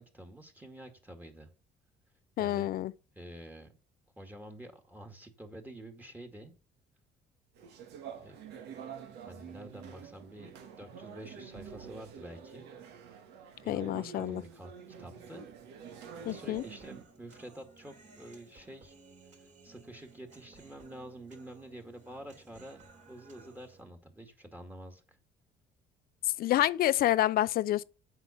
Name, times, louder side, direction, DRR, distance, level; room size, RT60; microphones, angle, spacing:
voice 1, 0.0-1.5 2.4-2.7 3.2-3.7 4.2-6.5 8.2-8.4 9.1-12.7 13.6-14.7 15.0-15.5 16.3-19.0 19.4-22.8 23.1-25.2, right 1 dB, 10° right, 2.1 m, -48 dB
voice 2, 2.4-2.9 13.7-14.4 16.3-16.6 26.4-27.8, left 14 dB, 60° left, 0.5 m, -28 dB
sound 1, 7.5-17.0, right 7 dB, 85° right, 1.9 m, -47 dB
Human voice, 15.8-23.8, right 3 dB, 45° right, 3.6 m, -57 dB
8.0 x 5.6 x 7.0 m
cardioid pair, 110°, 17 cm